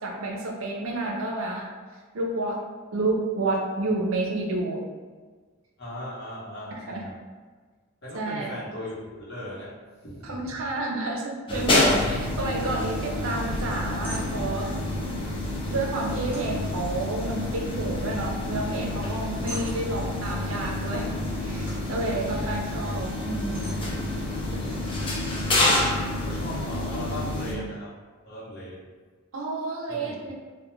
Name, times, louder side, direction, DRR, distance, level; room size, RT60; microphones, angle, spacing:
voice 1, 0.0-1.7 2.1-4.9 6.7-7.1 8.1-8.5 10.2-14.7 15.7-21.1 21.4-23.8 29.3-30.3, right 2 dB, 70° right, 0 dB, 0.5 m, -30 dB
voice 2, 5.8-7.2 8.0-9.8 10.0-10.6 12.0-12.3 22.1-22.5 24.0-24.1 24.6-25.3 25.8-27.9 28.2-28.8 29.9-30.1, left 1 dB, 50° left, -9 dB, 0.9 m, -38 dB
sound 1, 11.5-27.5, left 1 dB, 25° left, 0.3 m, -28 dB
sound 2, 14.0-14.6 16.3-17.7 18.0-18.5 18.9-20.3 21.4-22.2 22.8-22.9 23.5-24.6, right 1 dB, 10° right, 0.6 m, -44 dB
2.2 x 2.1 x 3.0 m, 1.4 s
head